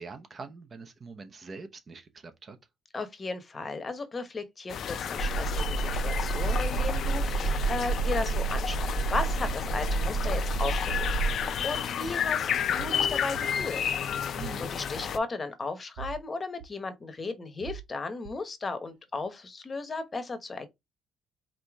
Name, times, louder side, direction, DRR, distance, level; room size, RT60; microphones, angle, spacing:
voice 1, 0.0-2.6 14.3-14.7, right 4 dB, 35° right, 0.9 m, -44 dB
voice 2, 2.9-12.5 12.8-13.8 14.3-20.7, left 3 dB, 30° left, 1.0 m, -35 dB
sound 1, 4.7-15.2, left 8 dB, 55° left, 0.6 m, -32 dB
sound 2, 5.2-11.7, right 4 dB, 65° right, 3.3 m, -29 dB
sound 3, 9.5-9.7 10.1-10.2 11.1-11.3 11.7-11.8 12.7-13.0 13.3-13.4 14.4-14.6 15.0-15.1 16.0-16.2 16.6-16.7 17.6-17.9 18.2-18.4, right 8 dB, 85° right, 0.6 m, -41 dB
4.9 x 2.8 x 3.5 m
cardioid pair, 105°, 0 cm